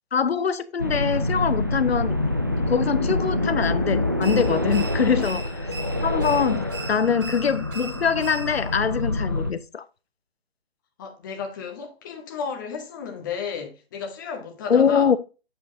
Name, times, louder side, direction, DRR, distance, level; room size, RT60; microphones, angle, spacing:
voice 1, 0.1-2.2 2.7-5.7 6.0-9.9 14.7-15.2, left 6 dB, 70° left, 0.7 m, -23 dB
sound 1, 0.8-9.5, left 1 dB, 20° right, 0.3 m, -26 dB
sound 2, 4.2-8.8, right 3 dB, 55° right, 1.4 m, -39 dB
voice 2, 11.0-15.1, left 6 dB, 20° left, 0.9 m, -33 dB
7.6 x 4.6 x 3.7 m
figure-of-eight pair, 150°, 32 cm